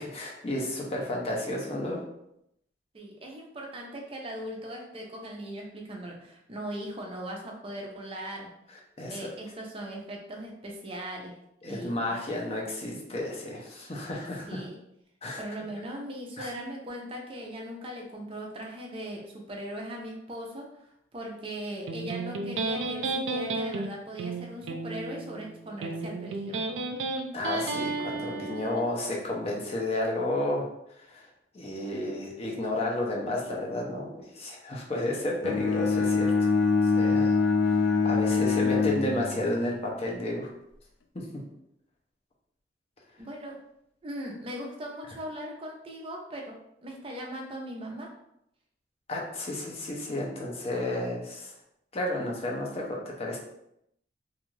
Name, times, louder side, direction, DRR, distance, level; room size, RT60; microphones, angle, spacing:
voice 1, 0.0-2.0 9.0-9.3 11.6-14.6 15.2-15.4 16.4-16.5 27.3-30.6 31.1-31.3 31.5-36.5 36.8-37.4 37.7-40.5 49.1-51.5 51.9-53.4, left 1 dB, 35° left, -1 dB, 0.6 m, -32 dB
voice 2, 2.9-8.5 9.1-11.4 11.6-12.2 14.5-14.8 15.4-20.7 21.1-26.7 43.2-43.6 44.0-46.6 46.8-48.1, equal, 30° right, 0 dB, 0.4 m, -39 dB
Electric guitar, 21.9-28.8, right 3 dB, 90° right, 0.4 m, -33 dB
Bowed string instrument, 35.4-39.7, left 4 dB, 85° left, 0.4 m, -24 dB
2.5 x 2.3 x 3.1 m, 0.78 s
head